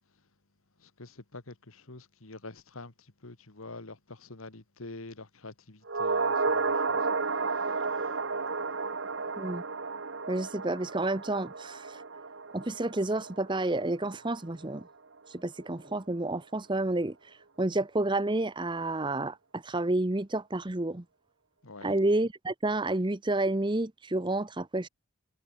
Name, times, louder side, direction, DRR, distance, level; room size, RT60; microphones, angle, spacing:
voice 1, 0.8-7.1 7.5-8.1 21.6-22.0, left 2 dB, 70° left, 1.9 m, -47 dB
sound 1, 5.9-14.3 14.6-14.7, right 4 dB, 55° right, 1.2 m, -32 dB
voice 2, 10.3-12.0 12.5-14.9 15.3-21.0 21.8-24.9, right 2 dB, 20° right, 0.8 m, -30 dB
head